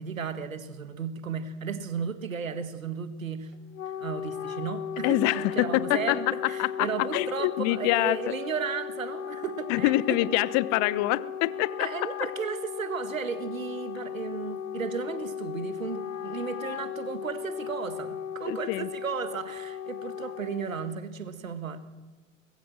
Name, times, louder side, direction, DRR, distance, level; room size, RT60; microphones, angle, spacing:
voice 1, 0.0-3.5 4.0-10.2 11.8-21.8, right 6 dB, 80° right, 12 dB, 1.7 m, -34 dB
Wind instrument woodwind instrument, 3.5-21.0, left 8 dB, 75° left, 0.8 m, -37 dB
voice 2, 5.0-8.2 9.7-11.9 18.4-18.9, left 17 dB, 45° left, 19 dB, 1.0 m, -26 dB
24.0 x 20.0 x 7.5 m, 1.3 s
figure-of-eight pair, 80°, 39 cm